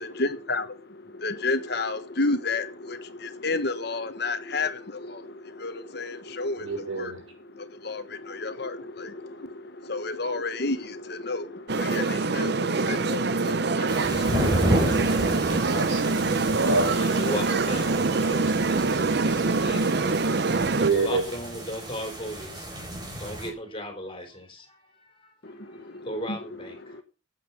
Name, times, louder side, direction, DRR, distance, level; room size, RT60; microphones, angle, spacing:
voice 1, 0.0-14.6 25.4-27.0, left 3 dB, 55° left, 1.4 m, -32 dB
voice 2, 6.6-7.2 15.7-16.2 16.5-17.0 20.8-21.2, right 3 dB, 80° right, 6.0 m, -26 dB
sound 1, 11.7-20.9, right 3 dB, 55° right, 0.7 m, -25 dB
sound 2, 13.9-23.5, equal, 20° right, 4.1 m, -32 dB
voice 3, 16.9-22.8 23.0-25.3 25.6-27.0, equal, 25° left, 3.8 m, -37 dB
14.0 x 8.6 x 5.6 m
head